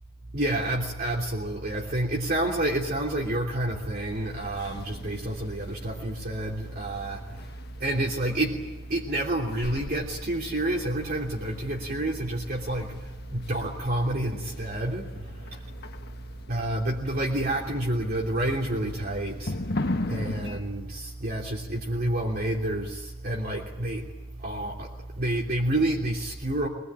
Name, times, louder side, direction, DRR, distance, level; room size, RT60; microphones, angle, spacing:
voice 1, 0.3-16.1 16.5-26.7, right 1 dB, 45° right, 3.1 m, -29 dB
sound 1, 4.1-20.6, left 2 dB, 50° left, 1.4 m, -39 dB
24.0 x 21.0 x 9.0 m
head